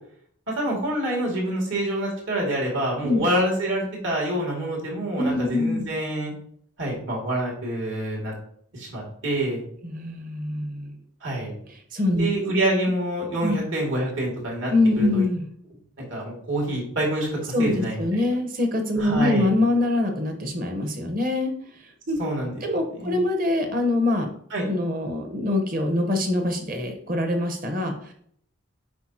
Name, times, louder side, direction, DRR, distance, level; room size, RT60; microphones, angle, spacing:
voice 1, 0.5-6.3 6.8-8.3 8.7-9.6 11.2-11.5 12.2-14.7 15.0-15.2 16.1-18.2 19.0-19.5 22.2-22.6 23.0-23.2 24.5-24.6, right 1 dB, 70° right, -2 dB, 2.5 m, -26 dB
voice 2, 5.2-5.9 9.8-10.9 11.9-12.3 13.4-13.6 14.7-15.4 17.5-21.5 22.1-22.2 22.6-24.3 24.7-28.1, left 2 dB, 40° right, 5 dB, 1.0 m, -24 dB
9.1 x 4.4 x 2.9 m, 0.64 s
head